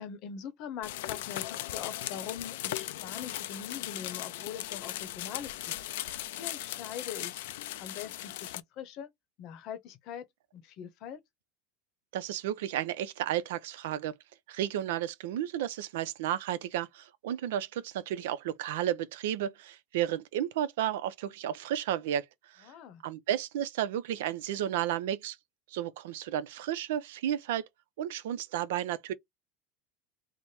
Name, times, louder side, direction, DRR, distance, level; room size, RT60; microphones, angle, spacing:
voice 1, 0.0-5.7 6.4-9.1 9.4-10.3 10.5-11.2 22.6-23.0, left 8 dB, 55° left, 0.7 m, -42 dB
sound 1, 0.8-8.6, left 14 dB, 85° left, 0.3 m, -38 dB
voice 2, 12.1-14.1 14.5-22.7 23.0-25.4 25.7-27.6 28.0-29.1, right 11 dB, 85° right, 0.5 m, -32 dB
3.2 x 2.1 x 4.2 m
supercardioid pair, 130°, 0 cm